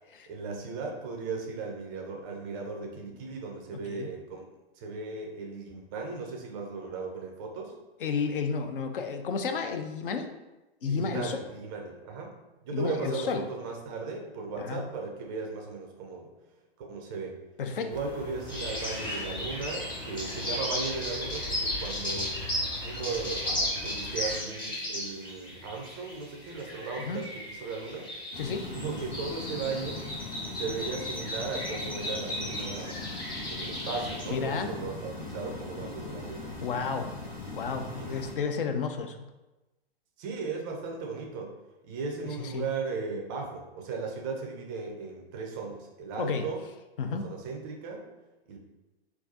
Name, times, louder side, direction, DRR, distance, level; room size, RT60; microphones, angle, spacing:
voice 1, 0.3-4.5 4.8-7.7 10.8-12.3 12.6-16.3 16.8-17.4 17.8-22.4 22.8-28.1 28.7-30.0 30.5-33.0 33.5-36.6 37.8-38.1 40.2-41.5 41.8-46.6 47.1-48.0 48.5-48.6, right 4 dB, 20° right, 1 dB, 0.4 m, -36 dB
voice 2, 3.7-4.1 8.0-10.3 10.8-11.4 12.7-13.4 14.6-14.8 17.6-17.9 27.0-27.2 28.4-28.7 34.3-34.7 36.6-37.1 37.5-39.3 42.4-42.7 46.2-46.5 47.0-47.3, left 5 dB, 60° left, 6 dB, 0.4 m, -32 dB
sound 1, 17.9-24.4, left 1 dB, 30° left, 1.2 m, -41 dB
sound 2, 18.5-34.3, left 1 dB, 15° left, 0.8 m, -35 dB
sound 3, 28.3-38.3, left 3 dB, 85° left, 1.3 m, -40 dB
3.9 x 2.3 x 2.6 m, 1.0 s
figure-of-eight pair, 110°, 31 cm